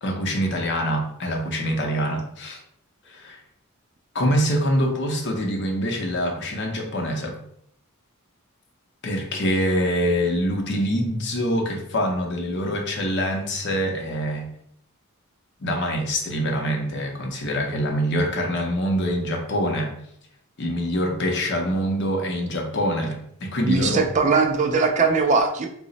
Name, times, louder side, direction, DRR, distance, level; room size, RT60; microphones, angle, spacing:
voice 1, 0.0-2.6 3.1-3.4 4.1-7.4 9.0-14.5 15.6-19.9 20.6-24.0, equal, 55° left, 2 dB, 0.6 m, -25 dB
voice 2, 23.6-25.7, right 4 dB, 35° right, 4 dB, 0.3 m, -20 dB
2.9 x 2.0 x 3.9 m, 0.70 s
head